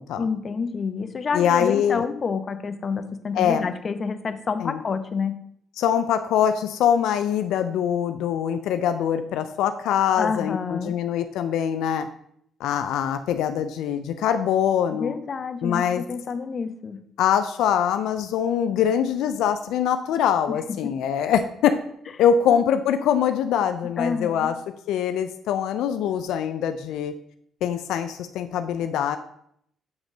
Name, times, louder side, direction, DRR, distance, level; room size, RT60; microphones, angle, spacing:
voice 1, 0.2-5.4 10.2-11.0 14.9-17.0 20.7-20.9 22.5-22.6 24.0-24.5, left 5 dB, 45° left, 9 dB, 0.8 m, -28 dB
voice 2, 1.3-2.1 3.3-3.6 4.6-4.8 5.8-12.1 12.6-15.1 15.6-16.0 17.2-21.8 22.2-24.6 24.9-27.1 27.6-29.2, left 9 dB, 85° left, 9 dB, 0.4 m, -23 dB
7.2 x 3.9 x 6.1 m, 0.69 s
cardioid pair, 90°, 0 cm